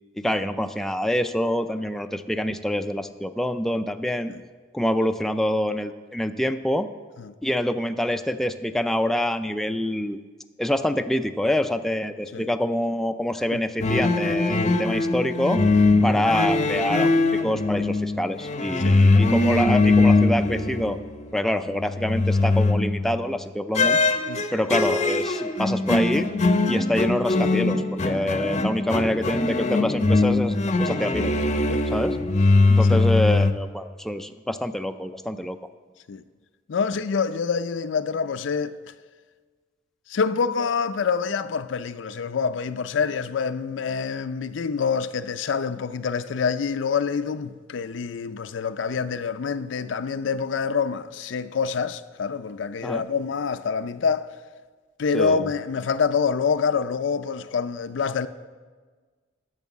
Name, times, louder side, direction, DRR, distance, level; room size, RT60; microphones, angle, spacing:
voice 1, 0.2-4.3 4.7-6.9 7.4-10.2 10.6-15.6 16.0-17.1 17.4-21.0 21.3-24.0 24.5-26.3 26.7-31.3 31.9-32.2 32.7-35.6 52.8-53.0 55.1-55.5, left 1 dB, ahead, 0.3 m, -26 dB
sound 1, 13.8-21.3 21.7-23.2 23.8-33.5, left 2 dB, 40° left, 0.6 m, -21 dB
voice 2, 36.7-38.7 40.1-54.3 55.0-58.3, left 5 dB, 80° left, 0.4 m, -26 dB
10.5 x 6.2 x 7.4 m
head